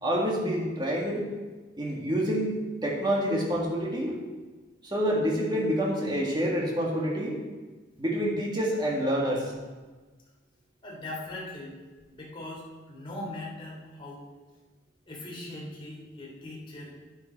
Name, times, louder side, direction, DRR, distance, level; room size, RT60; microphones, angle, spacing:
voice 1, 0.0-1.3 1.8-4.2 4.8-7.4 8.0-9.5, equal, 25° right, -3 dB, 2.0 m, -27 dB
voice 2, 10.8-11.8 12.1-14.2 15.1-16.9, left 1 dB, 30° left, -4 dB, 3.1 m, -40 dB
9.9 x 9.6 x 4.4 m, 1.3 s
head